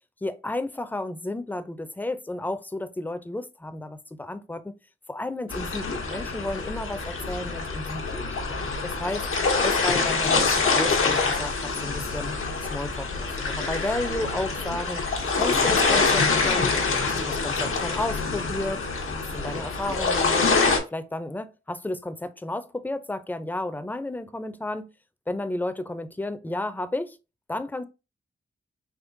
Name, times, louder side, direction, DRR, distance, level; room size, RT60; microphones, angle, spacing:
voice 1, 0.2-4.7 5.1-8.3 8.8-9.3 9.6-12.3 12.7-15.0 15.3-16.8 17.0-18.9 19.3-20.6 20.9-24.9 25.3-27.2 27.5-27.8, left 2 dB, 10° left, 0.4 m, -32 dB
sound 1, 5.5-20.8, left 4 dB, 85° left, 0.7 m, -25 dB
3.7 x 2.9 x 2.5 m
cardioid pair, 75°, 21 cm